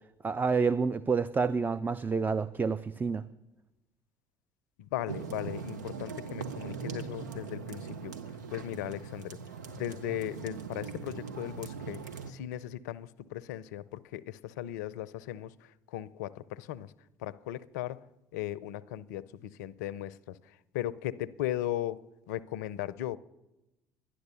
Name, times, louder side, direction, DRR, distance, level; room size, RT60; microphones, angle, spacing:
voice 1, 0.2-3.2, right 5 dB, 20° right, 0.4 m, -28 dB
voice 2, 4.8-8.1 8.5-9.4 9.7-12.0 12.3-15.5 15.9-16.9 17.2-18.0 18.3-20.4 20.7-22.0 22.3-23.2, left 13 dB, 75° left, 0.5 m, -37 dB
sound 1, 5.1-12.3, right 6 dB, 90° right, 0.7 m, -41 dB
11.5 x 10.5 x 6.8 m
hypercardioid pair, 65°, 9 cm